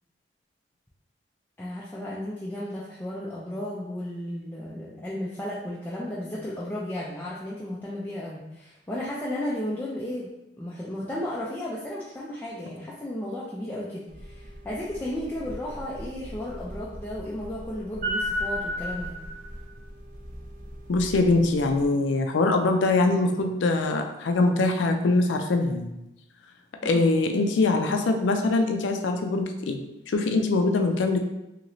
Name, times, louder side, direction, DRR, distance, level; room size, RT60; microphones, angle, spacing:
voice 1, 1.6-10.3 10.6-19.2 26.8-27.1, left 1 dB, 10° left, -7 dB, 0.3 m, -34 dB
sound 1, 14.1-21.8, equal, 45° right, 0.5 m, -36 dB
voice 2, 20.9-25.9 26.8-31.2, left 3 dB, 90° left, 5 dB, 0.4 m, -23 dB
3.0 x 2.8 x 2.6 m, 0.91 s
head